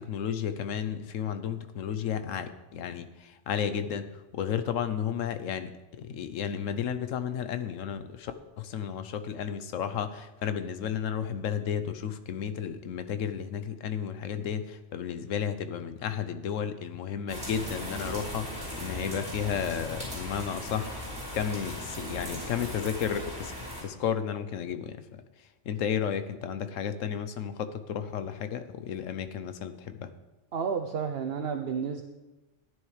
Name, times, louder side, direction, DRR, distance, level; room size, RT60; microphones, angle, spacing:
voice 1, 0.0-4.0 4.3-8.3 8.6-20.9 21.3-23.5 23.8-25.2 25.7-30.1, left 8 dB, 85° left, 10 dB, 1.1 m, -33 dB
sound 1, 17.3-23.8, equal, 5° right, 4.2 m, -38 dB
voice 2, 30.5-32.0, right 6 dB, 60° right, 5 dB, 0.8 m, -31 dB
14.0 x 9.5 x 3.3 m, 1.1 s
omnidirectional pair, 1.3 m